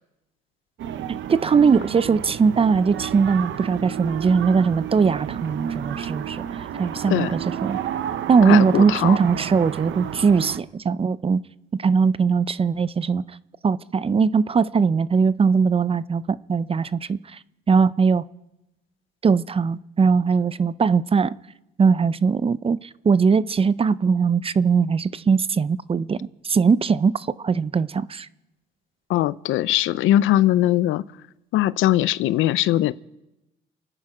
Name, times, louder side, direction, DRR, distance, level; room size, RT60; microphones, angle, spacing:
sound 1, 0.8-10.6, right 10 dB, 75° right, 0.8 m, -31 dB
voice 1, 1.3-6.4 6.8-7.8 8.3-11.4 11.7-13.2 13.6-17.4 17.7-18.2 19.2-21.4 21.8-28.3, right 5 dB, 30° right, 0.5 m, -20 dB
voice 2, 8.5-9.2 29.1-31.0 31.5-32.9, left 14 dB, 85° left, 0.5 m, -20 dB
29.0 x 9.9 x 4.9 m
cardioid pair, 90°, 20 cm